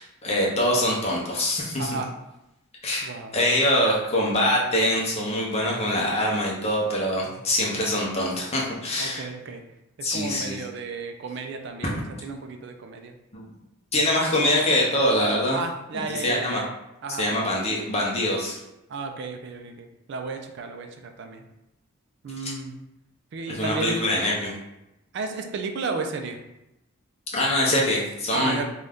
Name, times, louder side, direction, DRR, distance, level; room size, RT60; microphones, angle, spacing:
voice 1, 0.0-2.0 2.8-3.1 3.3-9.3 10.0-10.6 11.8-11.9 13.3-13.5 13.9-15.6 15.9-16.6 17.2-18.6 22.4-22.5 23.5-24.5 27.3-28.7, left 1 dB, 30° left, -3 dB, 0.7 m, -24 dB
voice 2, 1.8-2.1 3.0-3.4 9.0-9.6 10.0-13.1 15.5-16.7 17.0-17.2 18.9-21.4 22.2-22.7 23.3-24.0 25.1-26.4 28.3-28.7, right 4 dB, 55° right, 6 dB, 0.3 m, -33 dB
2.6 x 2.3 x 3.4 m, 0.91 s
head